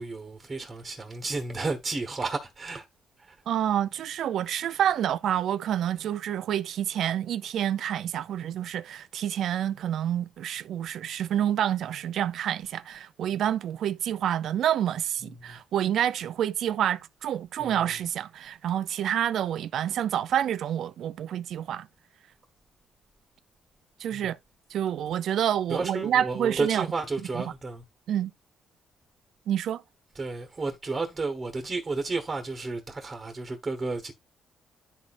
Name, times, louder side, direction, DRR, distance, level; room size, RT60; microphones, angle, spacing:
voice 1, 0.0-2.9 3.2-3.4 15.4-15.6 17.6-17.9 24.1-24.3 25.7-27.8 30.1-34.1, right 3 dB, 30° right, 1.1 m, -32 dB
voice 2, 3.5-21.9 24.0-24.4 24.7-26.9 27.3-27.4 28.1-28.3 29.5-29.8, right 10 dB, 70° right, 0.4 m, -28 dB
11.0 x 4.1 x 2.4 m
cardioid pair, 90°, 0 cm